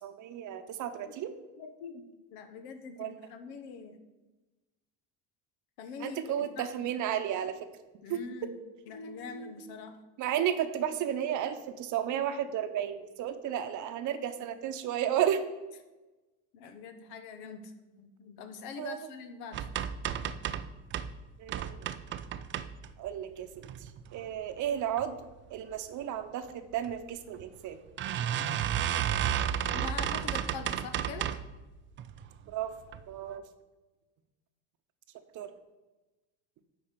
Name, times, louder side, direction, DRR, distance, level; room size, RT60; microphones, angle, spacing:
voice 1, 0.0-1.3 3.0-3.1 6.0-7.7 8.1-8.2 10.2-15.4 18.8-19.0 21.4-21.8 23.0-23.5 23.8-25.2 25.5-27.8 32.5-32.7 33.1-33.4 35.3-35.5, right 10 dB, 50° right, 9 dB, 0.9 m, -33 dB
voice 2, 1.6-2.0 2.3-4.0 5.8-7.0 8.0-8.5 8.9-9.9 16.5-19.6 20.0-20.4 29.7-31.3, left 5 dB, 70° left, 8 dB, 1.2 m, -44 dB
sound 1, 19.5-21.1 21.5-23.1 23.6-24.2 24.6-25.1 25.3-25.4 25.7-25.8 26.8-27.0 27.3-27.4 28.0-31.5 32.0-32.4 32.9-33.0 33.3-33.4, right 9 dB, 30° right, 0.4 m, -33 dB
10.0 x 4.3 x 6.7 m, 1.1 s
cardioid pair, 125°, 39 cm